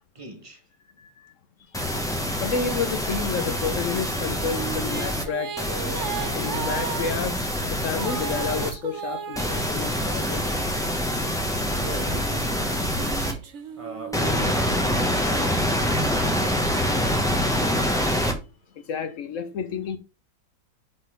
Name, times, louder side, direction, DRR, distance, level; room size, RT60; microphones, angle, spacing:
voice 1, 0.1-0.6 11.8-13.4 13.8-16.7, right 3 dB, 20° right, 1.1 m, -39 dB
voice 2, 1.0-1.3 1.7-5.5 6.3-10.5 11.7-11.9 18.8-20.0, left 6 dB, 65° left, 0.7 m, -31 dB
sound 1, 1.7-5.2 5.6-8.7 9.4-13.3 14.1-18.3, equal, 5° left, 0.7 m, -25 dB
sound 2, 4.3-11.0 11.7-15.4, right 7 dB, 55° right, 0.8 m, -36 dB
5.5 x 4.1 x 4.9 m
omnidirectional pair, 2.0 m